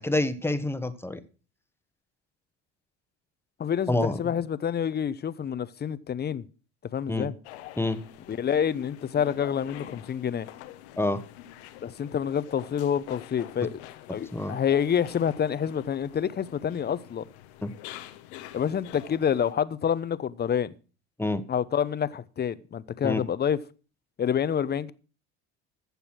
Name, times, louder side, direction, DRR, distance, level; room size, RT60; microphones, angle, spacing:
voice 1, 0.0-1.2 3.9-4.2 7.1-7.3 7.8-8.0 11.0-11.2 14.3-14.6 17.6-17.7 21.2-21.5 23.0-23.2, left 2 dB, 5° left, 1.2 m, -27 dB
voice 2, 3.6-6.5 6.9-7.3 8.3-10.5 11.8-13.8 14.1-17.2 18.5-20.7 21.5-23.6 24.2-24.9, left 8 dB, 30° left, 0.8 m, -27 dB
sound 1, 7.4-19.5, left 13 dB, 80° left, 1.2 m, -46 dB
15.0 x 6.9 x 6.1 m
hypercardioid pair, 80°, 33 cm